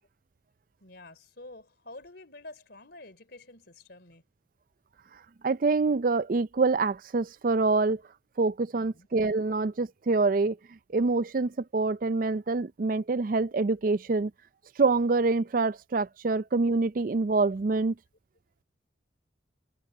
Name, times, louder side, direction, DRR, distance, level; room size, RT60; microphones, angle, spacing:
voice 1, 0.8-4.2 8.7-9.1, left 2 dB, 60° left, 3.7 m, -48 dB
voice 2, 5.4-8.0 8.4-10.6 10.9-14.3 14.8-18.0, right 3 dB, 45° right, 0.4 m, -26 dB
head